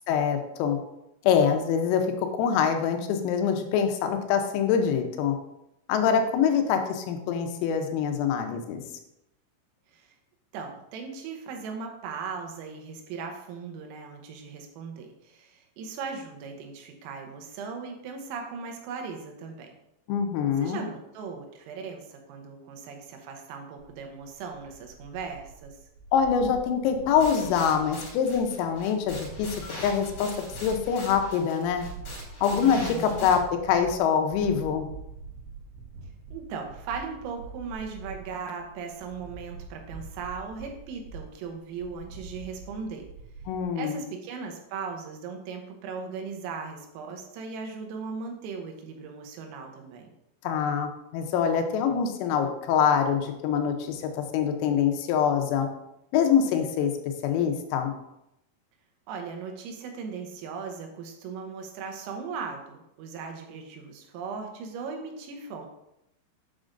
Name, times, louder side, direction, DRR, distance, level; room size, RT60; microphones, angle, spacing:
voice 1, 0.1-0.8 1.3-5.4 5.9-8.8 20.1-20.8 26.1-29.6 29.8-30.3 30.6-31.9 32.4-34.9 43.5-44.0 50.5-55.7 56.1-56.9 57.2-57.9, left 7 dB, 90° left, 5 dB, 3.5 m, -25 dB
voice 2, 10.5-19.7 20.6-25.8 32.6-33.3 36.3-43.1 43.8-50.1 59.1-65.7, right 5 dB, 85° right, 2 dB, 3.5 m, -38 dB
sound 1, 23.8-43.6, right 3 dB, 65° right, 3.4 m, -44 dB
sound 2, 27.2-33.3, left 1 dB, 50° left, 1.6 m, -42 dB
8.4 x 6.3 x 2.5 m, 0.85 s
omnidirectional pair, 5.9 m